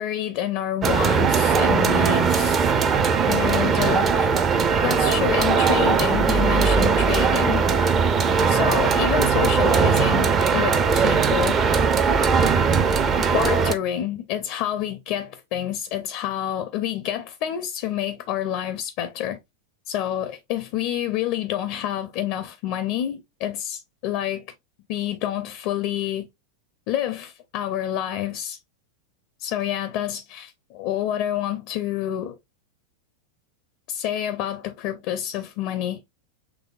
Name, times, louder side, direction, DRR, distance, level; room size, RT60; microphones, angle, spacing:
voice 1, 0.0-2.6 3.3-4.3 4.8-7.6 8.5-11.8 13.2-19.4 19.9-24.5 24.9-26.3 26.9-28.6 29.4-32.4 33.9-36.0, left 11 dB, 45° left, 0.5 m, -28 dB
sound 1, 0.8-13.7, right 5 dB, 25° right, 0.5 m, -20 dB
6.0 x 3.2 x 2.4 m
figure-of-eight pair, 90°, 0 cm